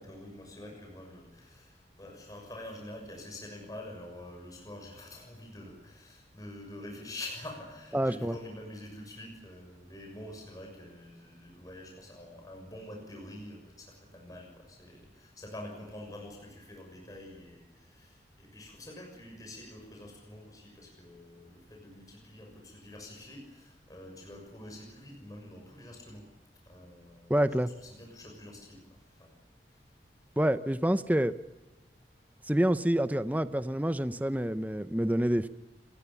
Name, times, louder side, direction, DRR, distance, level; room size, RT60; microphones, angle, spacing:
voice 1, 0.0-26.2 26.7-27.4 27.6-28.8 29.2-29.3, left 1 dB, 20° left, 1 dB, 6.5 m, -46 dB
voice 2, 7.9-8.4 27.3-27.7 30.4-31.3 32.5-35.5, right 1 dB, 10° right, 12 dB, 0.7 m, -27 dB
28.0 x 21.5 x 7.2 m, 1.1 s
head